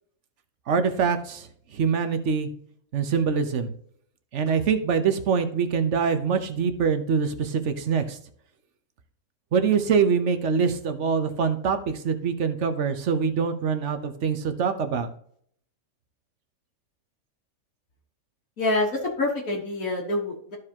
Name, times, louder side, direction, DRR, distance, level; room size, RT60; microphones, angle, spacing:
voice 1, 0.7-2.5 2.9-3.7 4.3-8.2 9.5-15.1, right 6 dB, 55° right, 9 dB, 1.1 m, -24 dB
voice 2, 18.6-20.6, left 2 dB, 70° left, -2 dB, 2.0 m, -26 dB
14.0 x 4.9 x 2.9 m, 0.63 s
omnidirectional pair, 1.5 m